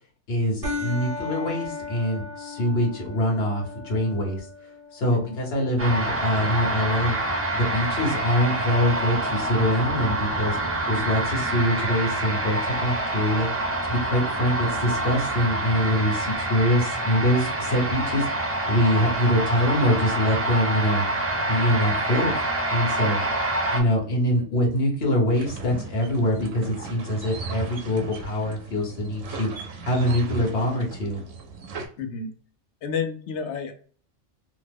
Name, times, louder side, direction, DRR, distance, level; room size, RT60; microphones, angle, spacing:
voice 1, 0.3-4.5 4.9-7.2 7.5-10.6 10.9-13.5 13.8-18.3 18.7-21.0 21.5-22.3 22.7-23.2 23.7-31.2, equal, 55° left, -1 dB, 1.3 m, -24 dB
sound 1, 0.6-9.6, left 4 dB, 50° right, 1.2 m, -38 dB
sound 2, 5.8-23.8, right 2 dB, 20° right, 0.4 m, -27 dB
sound 3, 25.3-31.9, right 4 dB, 90° right, 1.0 m, -36 dB
voice 2, 32.0-32.3 32.8-33.7, left 5 dB, 70° left, 7 dB, 0.9 m, -30 dB
2.9 x 2.1 x 3.3 m, 0.44 s
omnidirectional pair, 1.3 m